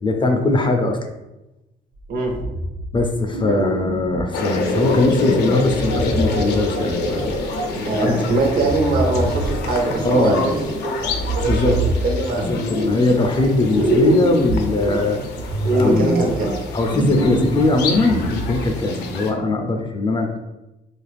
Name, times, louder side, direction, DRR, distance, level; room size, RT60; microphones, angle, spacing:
voice 1, 0.0-1.0 2.9-7.4 8.0-8.2 10.0-10.5 11.4-11.8 12.3-15.2 15.8-16.1 16.7-20.3, left 2 dB, 30° left, 4 dB, 0.4 m, -20 dB
voice 2, 2.1-2.4 7.7-10.5 10.8-11.8 12.0-12.9 15.6-16.6, right 2 dB, 60° right, 1 dB, 0.8 m, -22 dB
sound 1, 2.3-3.0 3.3-4.3 4.7-7.5 8.3-10.7 11.0-13.5 13.7-18.7, right 2 dB, 80° right, 1.0 m, -25 dB
sound 2, 4.3-19.3, left 3 dB, 85° left, 0.5 m, -28 dB
2.4 x 2.4 x 3.2 m, 0.97 s
cardioid pair, 80°, 17 cm